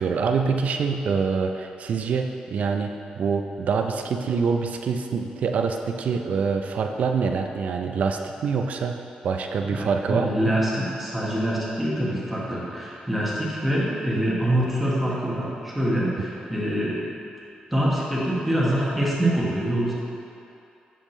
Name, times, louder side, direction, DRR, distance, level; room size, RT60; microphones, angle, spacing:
voice 1, 0.0-9.0 9.2-10.5, right 5 dB, 60° right, 5 dB, 0.4 m, -25 dB
voice 2, 9.7-17.0 17.7-19.9, right 1 dB, 5° right, -6 dB, 1.2 m, -25 dB
7.0 x 5.1 x 3.2 m, 2.7 s
wide cardioid pair, 145°, 3 cm